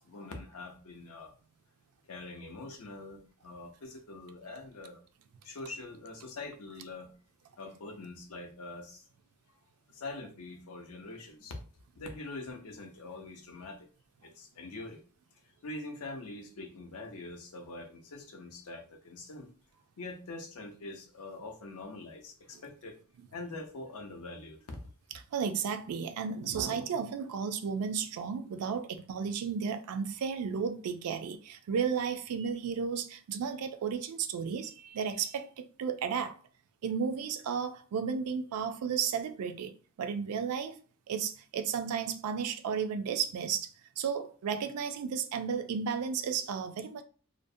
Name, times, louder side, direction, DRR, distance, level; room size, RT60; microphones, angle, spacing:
voice 1, 0.0-1.3 2.1-5.0 5.4-7.1 7.6-9.1 9.5-9.6 9.9-11.6 12.0-13.9 14.2-15.0 15.3-19.5 20.0-23.0 23.3-24.9, left 2 dB, 70° left, 0.6 m, -44 dB
voice 2, 25.3-36.4 36.8-40.8 41.1-47.0, right 6 dB, 75° right, 0.3 m, -33 dB
2.5 x 2.0 x 2.6 m
head